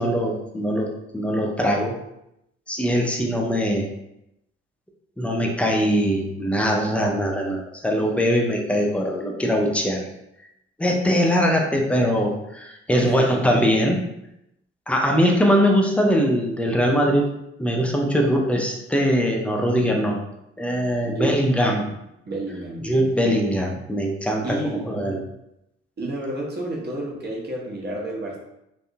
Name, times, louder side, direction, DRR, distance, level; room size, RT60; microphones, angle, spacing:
voice 1, 0.0-1.9 2.7-3.9 5.2-10.0 10.8-14.0 14.9-17.3 17.6-20.2 20.6-21.8 22.8-24.6 24.9-25.2, equal, 5° left, 0 dB, 0.4 m, -21 dB
voice 2, 13.0-13.4 21.0-21.4 21.8-21.9 22.3-22.9 24.4-24.9 26.0-28.4, right 1 dB, 30° right, -2 dB, 0.8 m, -30 dB
2.6 x 2.2 x 2.5 m, 0.84 s
figure-of-eight pair, 40°, 36 cm